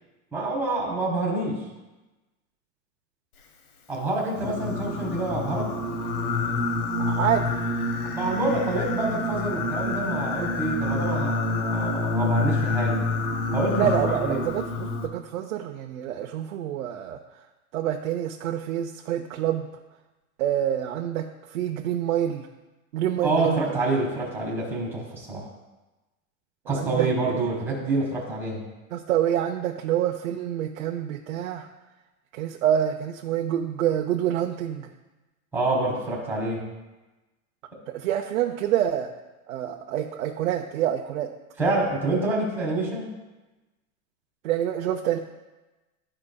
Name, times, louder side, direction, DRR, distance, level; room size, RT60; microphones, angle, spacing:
voice 1, 0.3-1.6 3.9-5.7 8.0-13.0 13.5-14.4 23.2-25.5 26.7-28.6 35.5-36.6 41.6-43.1, right 2 dB, 5° right, -4 dB, 1.5 m, -27 dB
Singing, 4.4-15.1, left 3 dB, 80° left, 1.1 m, -27 dB
voice 2, 7.0-7.6 13.7-17.2 17.7-19.7 20.4-22.5 22.9-23.6 26.7-27.1 28.9-31.7 32.3-34.9 37.9-39.1 39.5-41.3 44.4-45.2, right 10 dB, 65° right, 2 dB, 0.7 m, -27 dB
12.5 x 5.0 x 2.3 m, 1.1 s
supercardioid pair, 165°, 44 cm